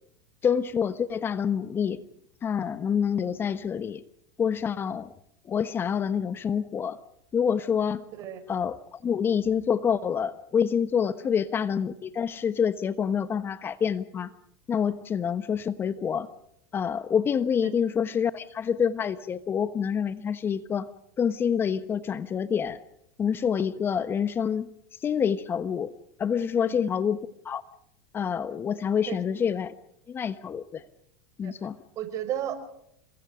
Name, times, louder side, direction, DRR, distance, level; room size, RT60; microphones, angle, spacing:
voice 1, 0.4-2.0 2.4-4.0 4.4-5.1 5.4-7.0 7.3-8.0 8.5-14.3 14.7-16.3 16.7-20.9 21.2-22.8 23.2-24.7 25.0-25.9 26.2-27.6 28.1-29.7 30.1-30.8 31.4-31.8, left 7 dB, 30° left, 13 dB, 1.2 m, -27 dB
voice 2, 32.0-32.6, right 11 dB, 45° right, 10 dB, 4.7 m, -33 dB
29.0 x 23.0 x 5.1 m, 0.73 s
hypercardioid pair, 95°, 8 cm